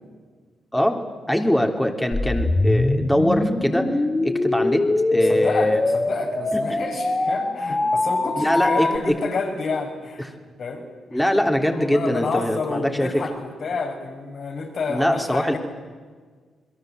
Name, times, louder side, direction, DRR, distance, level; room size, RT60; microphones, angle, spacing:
voice 1, 1.3-3.9 4.2-5.8 6.5-6.8 8.3-9.1 10.2-10.3 11.1-13.2 14.9-15.6, equal, 5° left, 3 dB, 3.5 m, -22 dB
sound 1, 2.1-9.0, left 2 dB, 30° left, 3.5 m, -23 dB
voice 2, 5.1-10.3 10.6-10.8 11.1-11.2 11.6-15.6, left 4 dB, 60° left, 3 dB, 6.0 m, -29 dB
28.5 x 22.0 x 8.0 m, 1.5 s
hypercardioid pair, 45°, 0 cm